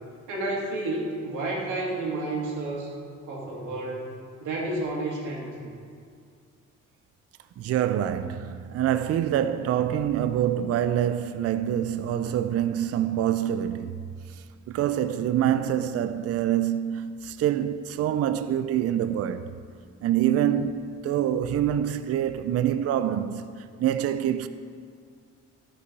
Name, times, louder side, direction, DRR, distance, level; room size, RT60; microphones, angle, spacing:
voice 1, 0.3-2.9 3.3-4.1 4.4-5.7, right 2 dB, 80° right, 2.2 m, -31 dB
voice 2, 7.6-14.0 14.7-19.5 20.0-24.5, right 10 dB, 55° right, 0.4 m, -26 dB
13.5 x 5.6 x 4.0 m
cardioid pair, 90°, 30 cm